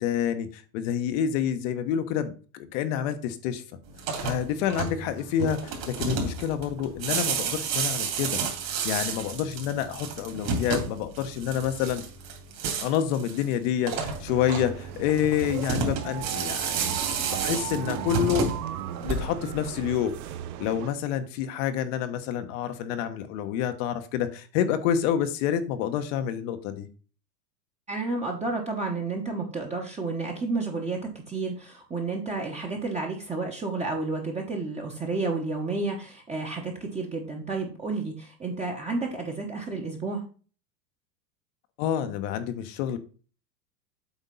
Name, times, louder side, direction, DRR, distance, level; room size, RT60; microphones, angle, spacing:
voice 1, 0.0-3.6 4.2-8.4 8.8-12.0 12.8-18.5 19.0-20.1 20.6-26.9 41.8-43.0, left 9 dB, 50° left, 9 dB, 1.1 m, -28 dB
sound 1, 3.9-19.6, right 5 dB, 45° right, 2.8 m, -31 dB
sound 2, 14.3-20.9, right 11 dB, 65° right, 0.9 m, -36 dB
voice 2, 27.9-31.0 31.3-40.2, right 3 dB, 15° right, 0 dB, 1.2 m, -31 dB
8.2 x 3.5 x 5.4 m, 0.38 s
hypercardioid pair, 115°, 49 cm